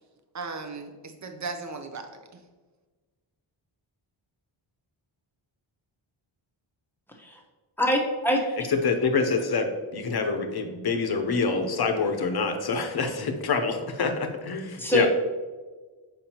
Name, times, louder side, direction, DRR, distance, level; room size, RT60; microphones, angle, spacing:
voice 1, 0.3-2.4, right 4 dB, 35° right, 6 dB, 0.6 m, -37 dB
voice 2, 7.8-8.4 14.8-15.1, equal, 5° left, 0 dB, 0.8 m, -24 dB
voice 3, 8.7-15.1, left 4 dB, 50° left, 6 dB, 0.8 m, -26 dB
7.0 x 5.2 x 2.9 m, 1.3 s
wide cardioid pair, 145°, 50 cm